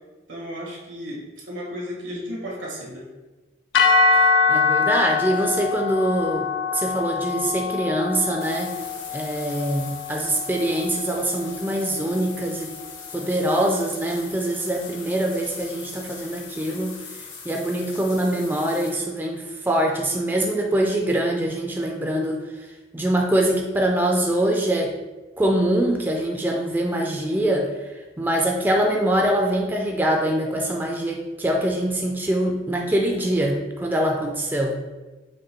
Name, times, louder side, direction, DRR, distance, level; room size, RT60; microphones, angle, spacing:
voice 1, 0.3-3.1, equal, 80° right, -3 dB, 1.5 m, -34 dB
sound 1, 3.7-12.0, left 4 dB, 70° left, 0.4 m, -24 dB
voice 2, 4.5-8.7 9.1-12.7 13.1-16.9 17.5-22.4 22.9-24.9 25.4-27.9 28.2-34.8, right 1 dB, 10° right, 0 dB, 0.3 m, -23 dB
sound 2, 8.4-18.9, left 5 dB, 85° left, 1.0 m, -40 dB
5.2 x 2.2 x 4.2 m, 1.2 s
head